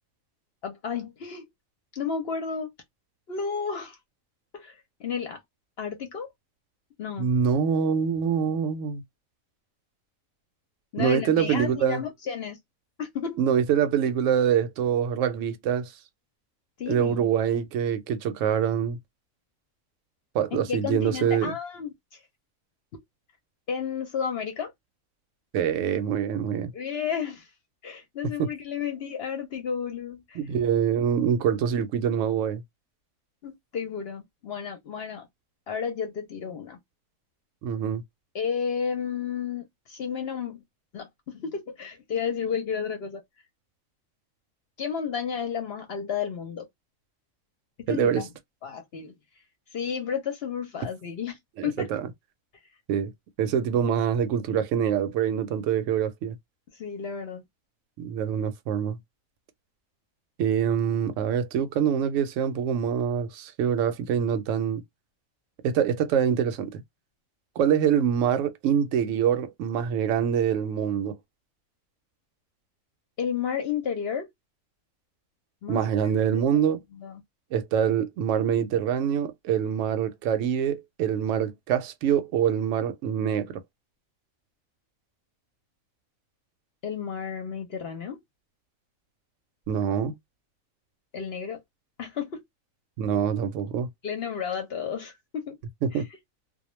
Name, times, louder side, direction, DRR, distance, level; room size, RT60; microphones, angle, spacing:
voice 1, 0.6-1.5 1.9-2.7 3.3-4.0 4.5-5.4 5.8-6.3 7.0-7.3 10.9-12.6 13.0-13.4 16.8-17.3 20.5-22.2 23.7-24.7 26.7-27.5 27.8-30.4 33.4-35.3 35.7-36.8 38.3-40.6 40.9-41.1 41.3-43.2 44.8-46.7 47.9-48.3 48.6-49.1 49.7-51.9 56.7-57.4 73.2-74.3 75.6-76.7 76.9-77.2 86.8-88.2 91.1-91.6 92.0-92.4 94.0-95.6 95.9-96.0, left 7 dB, 60° left, 0.7 m, -32 dB
voice 2, 7.2-9.0 11.0-12.0 13.4-15.9 16.9-19.0 20.3-21.5 25.5-26.7 28.4-28.5 30.4-32.6 37.6-38.0 47.9-48.2 51.6-52.1 52.9-53.1 53.4-56.4 58.0-59.0 60.4-64.8 65.6-66.8 67.6-71.2 75.7-76.8 77.5-83.6 89.7-90.1 93.0-93.9 95.8-96.0, right 8 dB, 70° right, 0.9 m, -25 dB
2.2 x 2.1 x 3.0 m
omnidirectional pair, 1.4 m